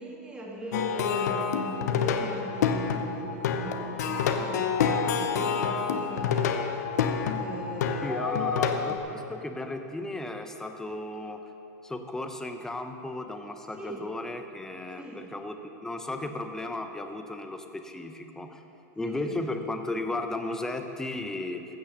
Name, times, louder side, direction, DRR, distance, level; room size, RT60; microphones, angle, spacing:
voice 1, 0.0-6.8 7.3-8.7 13.7-14.0 14.9-15.3 19.0-19.4, right 1 dB, 10° right, -2 dB, 1.9 m, -39 dB
Plucked string instrument, 0.7-9.0, left 6 dB, 80° left, 0.9 m, -28 dB
voice 2, 8.0-11.5 11.8-18.6 19.0-21.7, left 2 dB, 5° left, 6 dB, 0.7 m, -35 dB
15.0 x 6.3 x 6.5 m, 2.9 s
supercardioid pair, 145°, 9 cm